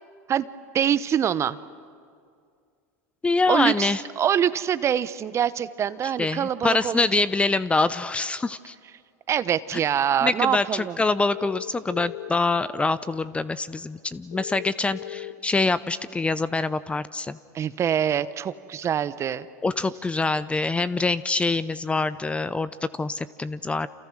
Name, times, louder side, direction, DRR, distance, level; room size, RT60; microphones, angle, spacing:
voice 1, 0.7-1.6 3.5-7.2 9.3-11.0 17.5-19.5, right 9 dB, 30° right, 15 dB, 1.0 m, -25 dB
voice 2, 3.2-4.0 6.2-8.7 10.2-17.4 19.6-23.9, left 3 dB, 15° left, 16 dB, 0.7 m, -25 dB
sound 1, 11.3-12.3 14.3-15.3, left 12 dB, 70° left, 2.3 m, -37 dB
29.0 x 28.0 x 6.3 m, 2.2 s
hypercardioid pair, 95°, 9 cm